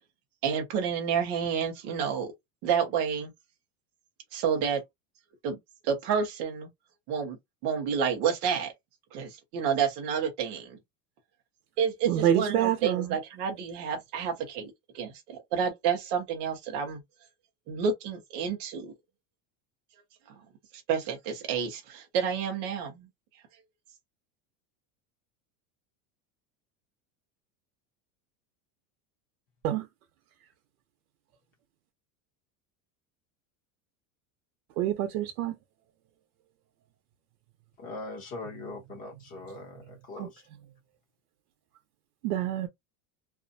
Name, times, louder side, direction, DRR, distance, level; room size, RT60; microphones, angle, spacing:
voice 1, 0.4-2.3 2.6-3.3 4.3-4.8 5.4-5.6 5.8-6.7 7.1-7.4 7.6-8.7 9.1-10.8 11.8-17.0 17.7-18.9 20.3-20.4 20.9-23.1, right 7 dB, 25° right, 0.4 m, -29 dB
voice 2, 12.0-13.2 29.6-29.9 34.8-35.5 40.2-40.3 42.2-42.7, right 11 dB, 85° right, 0.7 m, -27 dB
voice 3, 37.8-40.4, left 3 dB, 20° left, 0.8 m, -41 dB
2.5 x 2.0 x 2.5 m
supercardioid pair, 175°, 44 cm